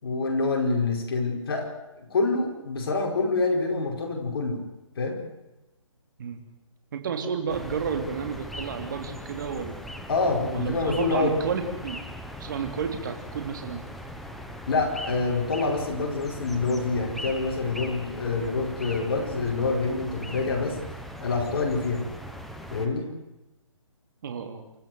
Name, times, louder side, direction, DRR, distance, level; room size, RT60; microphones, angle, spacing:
voice 1, 0.0-4.6 5.0-5.2 10.1-11.4 14.7-20.8 21.2-22.1 22.7-23.1, left 3 dB, 45° left, 1 dB, 5.1 m, -26 dB
voice 2, 6.9-9.8 10.4-12.0 12.4-13.8 24.2-24.6, right 6 dB, 40° right, 5 dB, 3.2 m, -31 dB
sound 1, 7.5-22.9, equal, ahead, 0.9 m, -40 dB
28.5 x 14.0 x 7.9 m, 0.98 s
hypercardioid pair, 165°, 17 cm